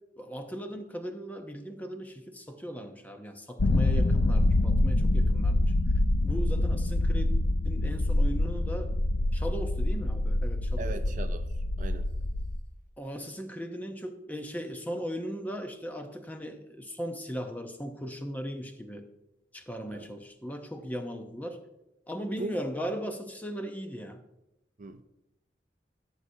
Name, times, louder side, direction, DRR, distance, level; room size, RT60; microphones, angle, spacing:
voice 1, 0.2-5.7 6.2-7.3 7.6-8.9 9.3-10.9 13.0-19.1 19.5-21.6 22.1-24.2, equal, 10° left, 5 dB, 0.7 m, -38 dB
sound 1, 3.6-12.6, left 1 dB, 80° left, 0.6 m, -26 dB
voice 2, 10.8-11.4 11.8-12.1 19.9-20.1 22.4-22.6 24.8-25.0, right 3 dB, 45° right, 9 dB, 0.5 m, -38 dB
14.0 x 6.3 x 2.7 m, 0.91 s
head